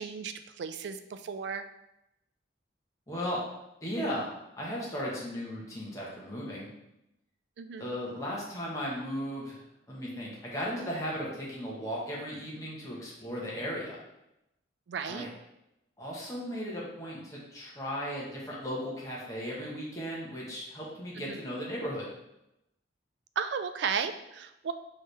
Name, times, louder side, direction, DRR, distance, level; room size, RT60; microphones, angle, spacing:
voice 1, 0.0-1.7 7.6-7.9 14.9-15.3 21.3-21.4 23.4-24.7, right 6 dB, 70° right, 9 dB, 0.3 m, -34 dB
voice 2, 3.1-3.4 3.8-4.3 4.6-6.7 7.8-9.6 9.9-14.0 15.1-15.3 16.0-22.1, equal, 20° left, -5 dB, 1.1 m, -36 dB
4.7 x 3.2 x 3.2 m, 0.87 s
head